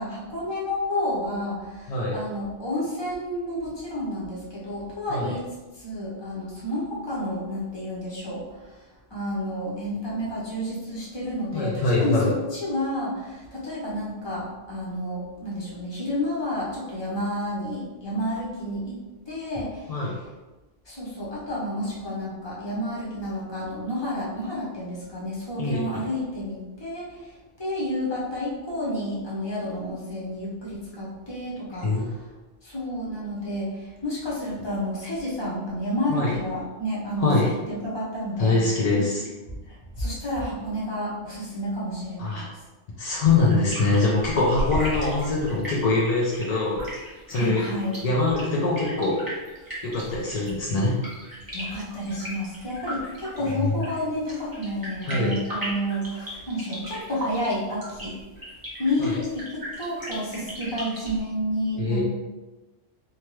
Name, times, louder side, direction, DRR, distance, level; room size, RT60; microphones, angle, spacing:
voice 1, 0.0-5.4 5.7-8.8 9.1-19.0 19.3-20.1 20.9-32.3 32.6-37.4 37.7-38.5 38.9-39.0 39.7-42.5 47.3-48.0 50.3-50.4 51.5-58.2 58.8-62.0, left 1 dB, 25° left, -6 dB, 0.7 m, -30 dB
voice 2, 11.5-12.3 19.9-20.2 25.6-25.8 31.8-32.0 36.1-36.3 37.2-37.5 38.4-39.2 42.2-42.4 43.0-46.8 47.3-47.7 48.0-49.2 49.8-51.0 55.1-55.4 59.0-59.2 61.8-62.0, left 3 dB, 70° left, -4 dB, 0.3 m, -23 dB
sound 1, 43.2-61.2, equal, 20° right, 0.8 m, -36 dB
2.7 x 2.2 x 3.1 m, 1.1 s
omnidirectional pair, 1.3 m